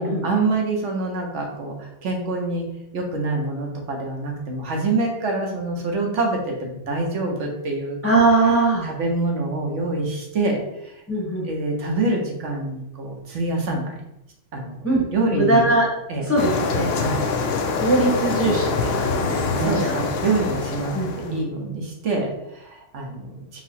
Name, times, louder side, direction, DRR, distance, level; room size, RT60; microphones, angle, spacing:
voice 1, 0.0-2.6 2.9-8.0 8.8-10.9 11.4-13.9 14.5-14.8 15.1-15.7 16.1-16.3 17.0-17.2 19.5-20.9 21.3-23.4, right 2 dB, 75° right, 1 dB, 1.1 m, -26 dB
voice 2, 8.0-8.9 11.1-11.5 14.8-15.0 15.3-15.8 16.2-16.9 17.7-20.0 20.9-21.4, right 2 dB, 15° left, -4 dB, 0.8 m, -21 dB
sound 1, 16.4-21.4, left 4 dB, 65° left, 0.7 m, -25 dB
4.5 x 2.0 x 4.1 m, 0.86 s
omnidirectional pair, 1.3 m